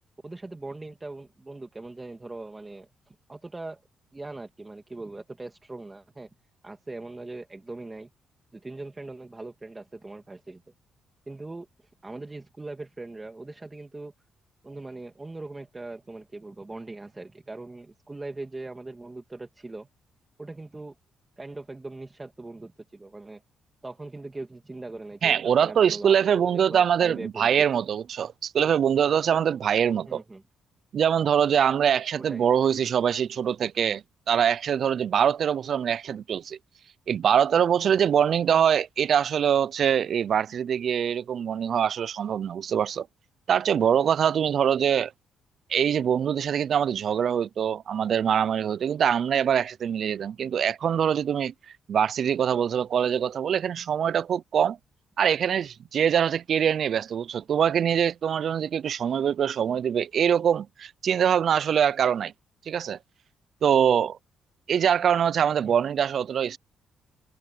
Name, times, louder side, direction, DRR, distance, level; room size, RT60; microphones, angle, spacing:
voice 1, 0.2-3.8 4.1-6.3 6.6-8.1 8.5-10.6 11.3-14.1 14.6-19.9 20.4-21.0 21.4-23.4 23.8-27.6 30.1-30.4 32.2-32.5 65.6-65.7, right 2 dB, 20° right, 2.6 m, -40 dB
voice 2, 25.2-30.2 30.9-36.6 37.1-43.1 43.5-45.1 45.7-51.5 51.9-54.8 55.2-62.3 62.7-63.0 63.6-64.2 64.7-66.6, right 8 dB, 60° right, 0.4 m, -23 dB
cardioid pair, 90°, 0 cm